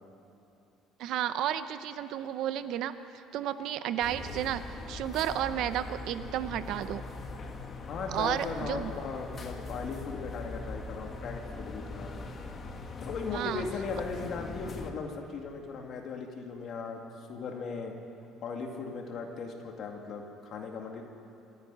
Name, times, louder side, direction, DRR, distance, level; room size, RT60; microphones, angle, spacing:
voice 1, 1.0-2.9 3.3-7.0 8.1-8.9 13.3-13.6, right 11 dB, 55° right, 12 dB, 0.6 m, -32 dB
sound 1, 4.0-14.9, left 3 dB, 25° left, 1.3 m, -41 dB
voice 2, 7.9-12.1 13.0-17.0 17.3-17.9 18.4-21.0, left 4 dB, 40° left, 2 dB, 2.2 m, -38 dB
26.0 x 10.5 x 10.0 m, 2.8 s
cardioid pair, 175°, 0 cm